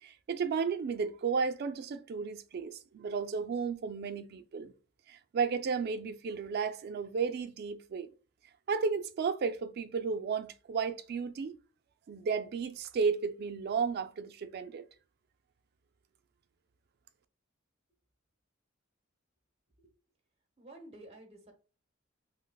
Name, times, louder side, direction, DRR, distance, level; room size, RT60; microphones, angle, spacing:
voice 1, 0.0-4.7 5.1-8.1 8.7-11.6 12.1-14.9, right 5 dB, 50° right, 0.3 m, -33 dB
voice 2, 20.6-21.5, right 1 dB, 30° right, 0.8 m, -51 dB
5.4 x 2.0 x 2.2 m
head